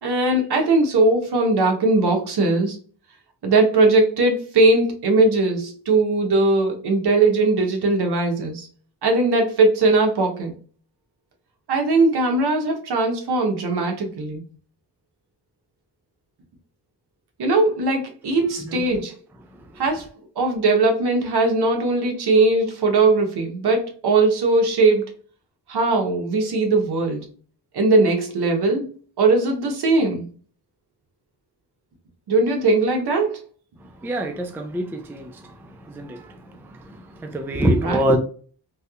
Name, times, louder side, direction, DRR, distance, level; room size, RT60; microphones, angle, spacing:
voice 1, 0.0-2.8 3.4-8.7 9.0-10.5 11.7-14.4 17.4-19.1 19.8-20.0 20.4-25.1 25.7-27.3 27.7-28.9 29.2-30.2 32.3-33.4 37.8-38.0, right 2 dB, 65° right, 1.0 m, -19 dB
voice 2, 34.0-35.3 35.9-36.2 37.2-38.2, right 1 dB, 5° right, 0.3 m, -23 dB
3.3 x 2.7 x 2.3 m
wide cardioid pair, 105°, 42 cm